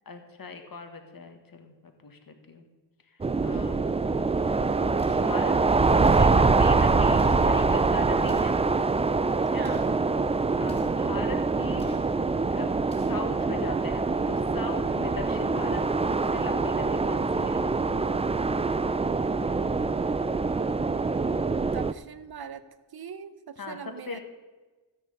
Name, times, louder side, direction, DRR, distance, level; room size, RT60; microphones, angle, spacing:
voice 1, 0.0-2.7 3.1-3.9 5.2-8.6 9.5-9.8 10.6-11.9 12.5-17.6 23.6-24.2, left 4 dB, 55° left, 5 dB, 1.6 m, -40 dB
sound 1, 3.2-21.9, right 4 dB, 15° right, 0.3 m, -24 dB
voice 2, 3.5-3.9 9.5-9.9 21.6-22.6 22.9-24.2, right 7 dB, 60° right, 12 dB, 0.8 m, -41 dB
sound 2, 5.0-5.4 6.0-6.4 7.2-7.5 8.2-8.7 9.6-10.0 10.6-11.1 11.8-12.1 12.8-13.3, left 1 dB, 15° left, 2.4 m, -49 dB
12.5 x 9.7 x 5.4 m, 1.3 s
wide cardioid pair, 80°, 42 cm